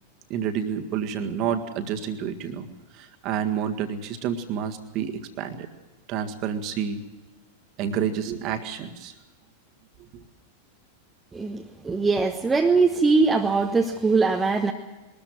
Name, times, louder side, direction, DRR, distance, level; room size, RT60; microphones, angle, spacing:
voice 1, 0.3-2.7 2.9-5.7 6.1-7.0 7.8-9.1 10.1-10.2, right 8 dB, 40° right, 7 dB, 1.9 m, -29 dB
voice 2, 11.3-14.7, right 4 dB, 10° right, 2 dB, 1.2 m, -21 dB
21.5 x 13.5 x 9.2 m, 1.2 s
figure-of-eight pair, 90°, 0 cm